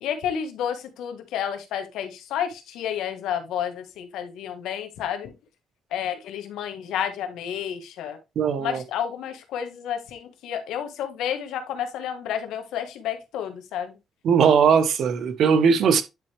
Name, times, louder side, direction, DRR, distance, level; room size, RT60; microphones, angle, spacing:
voice 1, 0.0-5.3 5.9-8.2 8.6-13.9, left 9 dB, 85° left, 1.5 m, -30 dB
voice 2, 8.4-8.8 14.2-16.0, right 6 dB, 70° right, 1.1 m, -19 dB
9.7 x 4.3 x 3.4 m
cardioid pair, 90°, 0 cm